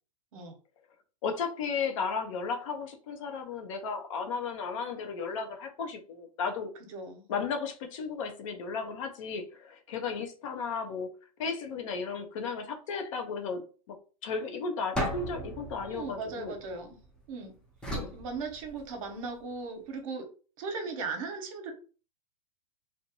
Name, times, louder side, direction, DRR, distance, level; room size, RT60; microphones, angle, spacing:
voice 1, 1.2-6.7 7.3-11.1 11.4-14.0 14.2-16.6 17.9-18.1, left 5 dB, 55° left, 0.7 m, -34 dB
voice 2, 6.9-7.3 15.8-17.0 17.3-17.5 18.1-20.3 20.6-21.7, right 4 dB, 60° right, 0.8 m, -37 dB
sound 1, 14.9-17.2 17.8-19.2, equal, 5° left, 0.6 m, -36 dB
2.6 x 2.1 x 2.9 m
hypercardioid pair, 135°, 20 cm